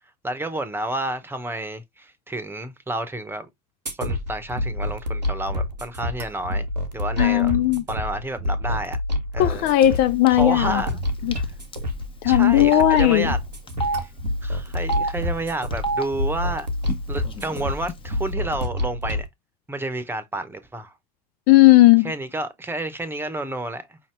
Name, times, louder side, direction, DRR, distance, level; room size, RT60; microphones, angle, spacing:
voice 1, 0.2-3.5 4.0-6.7 6.9-7.5 7.9-9.0 9.3-9.7 10.3-11.0 12.2-13.4 13.9-14.1 14.4-16.7 17.1-19.3 19.7-20.9 22.0-24.0, right 2 dB, 10° right, 1.0 m, -30 dB
sound 1, 3.9-19.3, left 1 dB, 85° right, 0.9 m, -28 dB
voice 2, 7.2-7.8 9.4-10.8 11.2-11.4 12.2-13.3 21.5-22.1, left 15 dB, 45° left, 0.4 m, -16 dB
Telephone, 9.8-10.0 10.3-10.4 11.3-11.4 11.7-11.8 12.6-12.9 13.7-14.0 14.8-15.1 15.7-16.0 16.8-17.0 17.2-17.9, right 2 dB, 25° left, 1.0 m, -26 dB
5.5 x 2.8 x 3.2 m
figure-of-eight pair, 65°, 21 cm